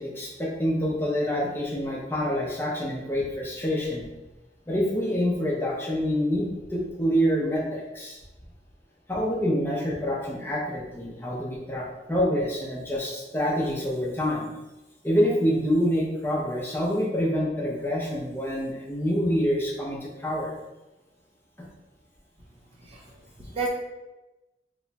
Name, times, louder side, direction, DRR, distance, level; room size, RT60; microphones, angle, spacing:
voice 1, 0.0-4.1 4.7-8.2 9.1-14.5 15.0-20.5, equal, 15° left, -4 dB, 0.6 m, -26 dB
voice 2, 22.8-23.7, right 3 dB, 35° right, -2 dB, 0.6 m, -33 dB
3.0 x 2.2 x 4.0 m, 1.1 s
head